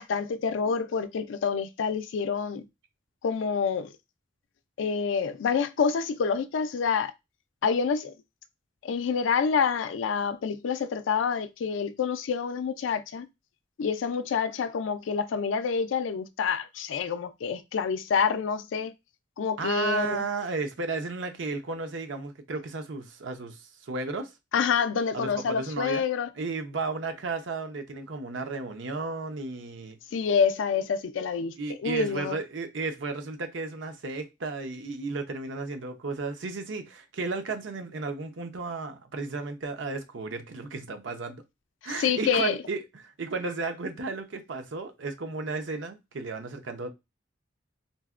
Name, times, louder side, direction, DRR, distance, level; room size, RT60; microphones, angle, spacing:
voice 1, 0.0-2.6 3.2-3.9 4.8-7.1 7.6-8.1 8.8-13.3 13.8-18.9 19.4-20.2 24.5-26.3 30.1-31.6 31.8-32.4 41.8-42.6, left 6 dB, 90° left, 0.4 m, -27 dB
voice 2, 19.6-24.3 25.1-26.0 26.3-30.0 31.6-41.4 41.8-46.9, right 3 dB, 80° right, 0.6 m, -34 dB
3.9 x 2.1 x 2.4 m
head